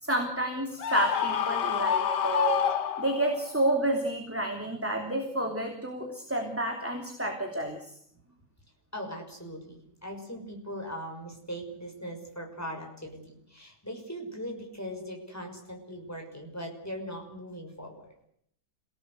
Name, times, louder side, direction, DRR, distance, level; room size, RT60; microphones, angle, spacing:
voice 1, 0.0-2.6 3.0-8.0, right 1 dB, 5° right, 2 dB, 3.1 m, -30 dB
Screaming, 0.8-3.5, left 9 dB, 80° left, 1.9 m, -28 dB
voice 2, 8.9-18.0, equal, 10° left, 1 dB, 6.1 m, -40 dB
27.5 x 18.0 x 8.2 m, 0.69 s
omnidirectional pair, 1.8 m